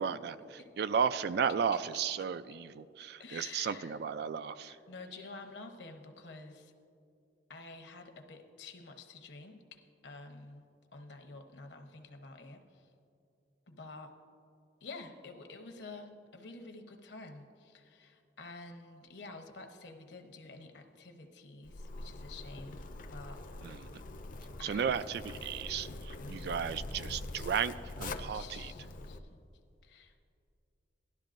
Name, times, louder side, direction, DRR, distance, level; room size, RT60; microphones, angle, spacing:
voice 1, 0.0-4.8 23.6-24.0 24.6-28.7, right 7 dB, 60° right, 13 dB, 0.3 m, -34 dB
voice 2, 3.2-3.9 4.7-6.7 7.5-10.6 10.9-12.9 13.7-14.1 14.8-24.0 24.6-24.9 28.3-29.4 29.8-30.2, left 3 dB, 70° left, 5 dB, 0.9 m, -49 dB
Zipper (clothing), 21.7-29.2, left 2 dB, 45° left, 0.5 m, -44 dB
17.0 x 12.0 x 2.5 m, 2.5 s
head